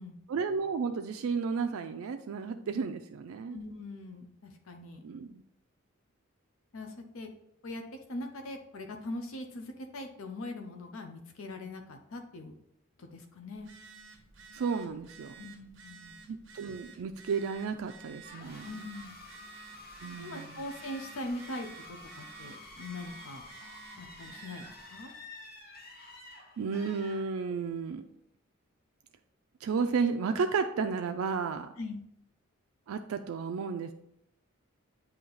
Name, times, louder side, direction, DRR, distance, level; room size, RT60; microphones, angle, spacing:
voice 1, 0.3-3.6 5.0-5.4 14.5-15.3 16.3-18.9 20.0-20.5 26.6-28.0 29.6-31.7 32.9-33.9, right 5 dB, 80° right, 6 dB, 0.4 m, -33 dB
voice 2, 3.5-5.1 6.7-7.3 7.6-7.8 8.1-12.6 13.0-13.7 15.4-16.2 18.6-19.1 20.2-23.5 24.0-25.1 31.8-32.0, left 2 dB, 75° left, 5 dB, 0.6 m, -41 dB
Telephone, 13.5-24.8, right 6 dB, 60° right, 1.0 m, -52 dB
sound 1, 18.2-27.8, left 2 dB, 45° left, 1.6 m, -50 dB
8.5 x 2.8 x 3.9 m, 0.77 s
head